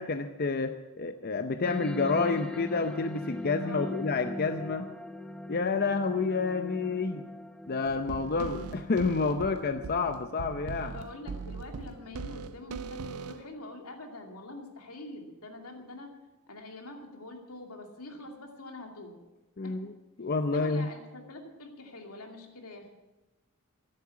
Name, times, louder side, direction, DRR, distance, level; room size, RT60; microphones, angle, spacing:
voice 1, 0.0-4.9 5.5-7.2 7.7-10.9 19.6-19.9 20.2-20.9, left 4 dB, 45° left, 8 dB, 0.6 m, -29 dB
sound 1, 1.6-12.6, left 1 dB, 5° left, 0.4 m, -41 dB
voice 2, 3.6-4.0 10.7-16.1 16.5-19.2 19.6-19.7 20.5-22.9, left 2 dB, 85° left, 3 dB, 2.6 m, -45 dB
sound 2, 7.9-13.5, right 5 dB, 80° right, 0.5 m, -40 dB
13.5 x 11.0 x 8.3 m, 1.1 s
head